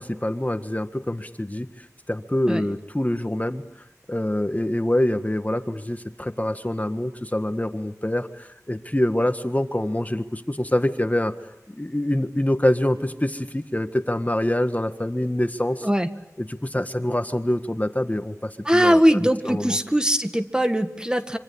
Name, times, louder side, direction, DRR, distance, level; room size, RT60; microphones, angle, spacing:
voice 1, 0.0-3.6 4.1-11.3 11.7-15.9 16.4-19.8, left 1 dB, 25° left, 8 dB, 1.7 m, -25 dB
voice 2, 18.7-21.4, equal, 15° right, 8 dB, 1.8 m, -20 dB
26.0 x 26.0 x 8.7 m, 0.85 s
wide cardioid pair, 45°, 6 cm